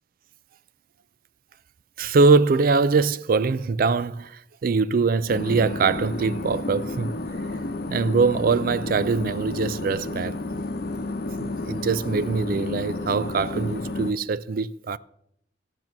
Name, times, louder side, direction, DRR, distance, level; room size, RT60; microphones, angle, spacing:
voice 1, 2.0-7.1 7.9-10.4 11.4-15.0, right 4 dB, 50° right, 0.4 m, -22 dB
sound 1, 5.3-14.1, left 2 dB, 60° left, 0.9 m, -31 dB
13.5 x 9.6 x 6.0 m
head